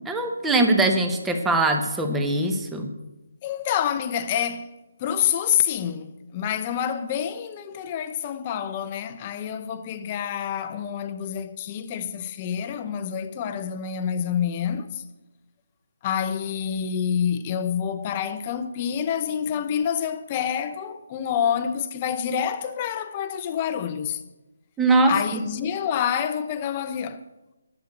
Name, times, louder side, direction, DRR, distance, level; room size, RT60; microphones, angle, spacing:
voice 1, 0.0-2.9 24.8-25.4, right 2 dB, 5° right, 0.9 m, -22 dB
voice 2, 3.4-4.7 5.0-15.0 16.0-24.2 25.1-27.2, left 8 dB, 20° left, 0.7 m, -27 dB
11.0 x 8.1 x 8.2 m
hypercardioid pair, 170°, 0 cm